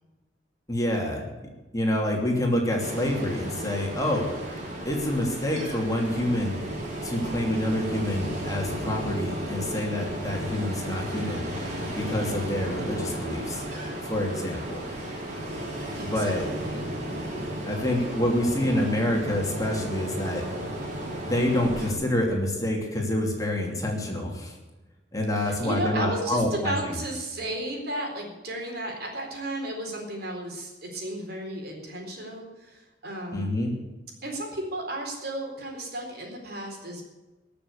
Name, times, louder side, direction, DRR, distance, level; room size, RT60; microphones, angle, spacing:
voice 1, 0.7-1.3 1.7-4.3 4.8-6.6 7.0-11.5 12.0-13.6 14.0-14.8 16.1-16.4 17.7-20.4 21.2-24.6 25.1-26.7 33.3-33.7, left 1 dB, 20° left, 0 dB, 2.9 m, -27 dB
Ocean, 2.8-21.9, right 1 dB, 45° right, 4.4 m, -34 dB
voice 2, 16.0-17.0 25.3-33.5 34.2-37.0, right 1 dB, 60° right, 1 dB, 4.1 m, -34 dB
21.0 x 7.0 x 8.3 m, 1.1 s
head